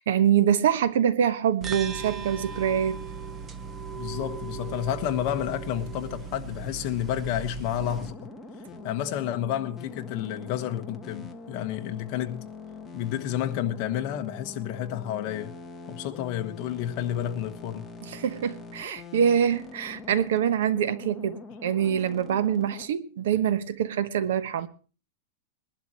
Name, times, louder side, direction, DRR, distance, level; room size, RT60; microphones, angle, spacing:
voice 1, 0.0-3.0 18.0-24.7, right 9 dB, 70° right, 1.2 m, -25 dB
sound 1, 1.6-8.1, right 6 dB, 15° right, 0.8 m, -37 dB
voice 2, 3.9-8.1 8.8-12.5 12.9-15.5 15.9-17.9, left 11 dB, 35° left, 1.3 m, -30 dB
sound 2, 7.8-22.9, left 3 dB, 10° left, 1.2 m, -43 dB
22.0 x 12.0 x 3.1 m
supercardioid pair, 170°, 0 cm